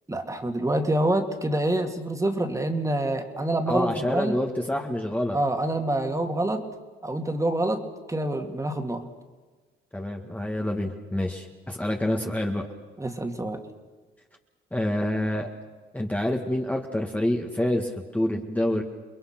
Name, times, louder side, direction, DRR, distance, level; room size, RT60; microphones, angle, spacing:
voice 1, 0.1-4.4 5.3-6.6 7.0-7.8 8.1-9.0 13.0-13.6, right 1 dB, 15° right, 5 dB, 2.4 m, -26 dB
voice 2, 3.7-5.4 9.9-12.7 14.7-15.5 15.9-18.8, left 1 dB, 5° left, 1 dB, 1.8 m, -27 dB
29.5 x 21.5 x 6.0 m, 1.4 s
cardioid pair, 90°, 20 cm